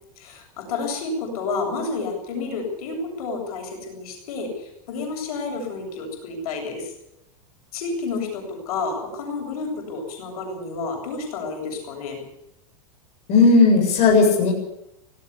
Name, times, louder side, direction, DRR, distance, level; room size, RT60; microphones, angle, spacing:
voice 1, 0.2-6.9 7.7-12.2, left 3 dB, 75° left, 2 dB, 8.0 m, -30 dB
voice 2, 13.3-14.5, left 4 dB, 35° left, 0 dB, 7.8 m, -15 dB
18.5 x 17.0 x 8.4 m, 0.83 s
supercardioid pair, 145°, 19 cm